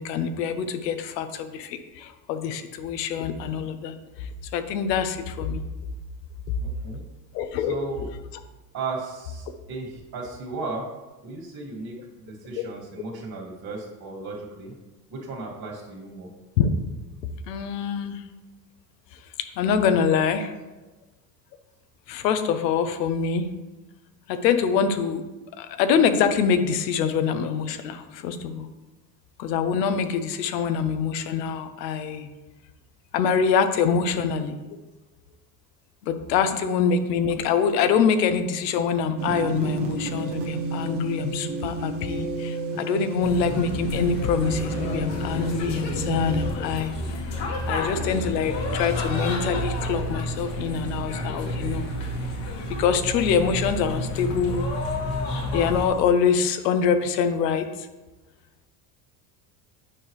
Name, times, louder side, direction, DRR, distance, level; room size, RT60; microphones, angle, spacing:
voice 1, 0.0-5.6 7.3-7.8 12.5-12.6 16.6-16.7 17.5-18.2 19.1-20.5 22.1-23.5 24.3-25.3 25.6-28.7 29.4-32.3 33.1-34.6 36.0-46.9 47.6-51.8 52.7-54.7 55.5-57.9, left 6 dB, 90° left, 9 dB, 0.8 m, -25 dB
voice 2, 6.6-7.0 7.7-8.1 8.7-10.9 11.2-14.7 15.1-16.3 18.5-18.6 20.6-20.7, right 3 dB, 45° right, -1 dB, 2.2 m, -35 dB
sound 1, 39.2-46.5, right 3 dB, 80° right, 1.3 m, -30 dB
sound 2, 43.2-55.9, left 1 dB, 65° left, 1.8 m, -30 dB
8.8 x 4.7 x 3.2 m, 1.1 s
supercardioid pair, 80°, 48 cm